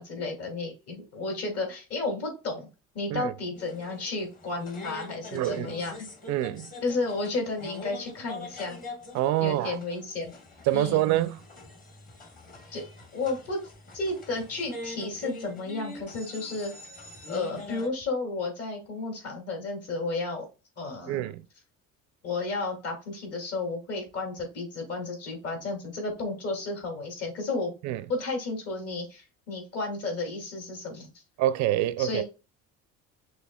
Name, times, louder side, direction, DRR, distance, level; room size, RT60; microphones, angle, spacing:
voice 1, 0.0-2.7 2.9-5.9 6.8-8.8 9.4-10.3 10.7-11.0 12.7-12.8 13.1-13.6 13.9-16.7 17.3-20.4 20.8-21.2 22.2-27.7 28.1-31.1 32.0-32.2, left 3 dB, 50° left, 2.7 m, -32 dB
sound 1, 3.5-17.9, left 2 dB, 30° left, 1.4 m, -44 dB
voice 2, 5.3-5.7 6.3-6.7 9.1-9.8 10.7-11.4 21.1-21.4 27.8-28.0 31.4-32.2, right 14 dB, 65° right, 0.5 m, -26 dB
6.2 x 3.2 x 2.3 m
cardioid pair, 135°, 30 cm